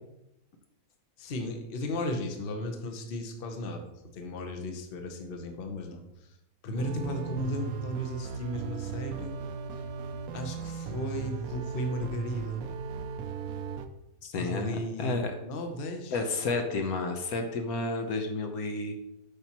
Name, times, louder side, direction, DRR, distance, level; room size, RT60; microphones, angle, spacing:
voice 1, 1.2-6.3 6.6-9.4 9.7-9.8 10.3-12.6 14.4-16.2, left 1 dB, 45° left, 4 dB, 0.9 m, -35 dB
sound 1, 6.8-13.9, right 6 dB, 75° right, 1.0 m, -37 dB
voice 2, 14.2-15.3 16.1-19.0, left 3 dB, 75° left, 4 dB, 1.3 m, -31 dB
8.4 x 5.8 x 3.0 m, 0.88 s
omnidirectional pair, 1.6 m